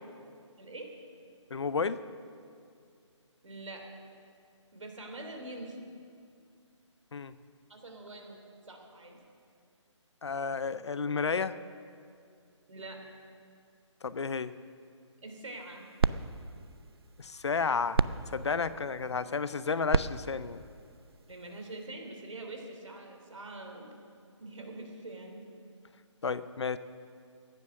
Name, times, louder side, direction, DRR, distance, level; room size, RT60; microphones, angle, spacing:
voice 1, 1.5-2.0 7.1-7.3 10.2-11.6 14.0-14.5 17.2-18.0 18.3-20.6 26.2-26.8, left 5 dB, 60° left, 15 dB, 0.6 m, -32 dB
voice 2, 3.4-3.9 4.7-5.9 7.7-8.4 8.7-9.2 12.7-13.0 15.2-15.9 18.4-18.5 21.3-23.9 24.4-25.4, right 2 dB, 80° right, 3 dB, 3.3 m, -44 dB
sound 1, 15.4-21.8, right 5 dB, 50° right, 0.4 m, -35 dB
15.5 x 10.5 x 6.3 m, 2.3 s
hypercardioid pair, 175°, 16 cm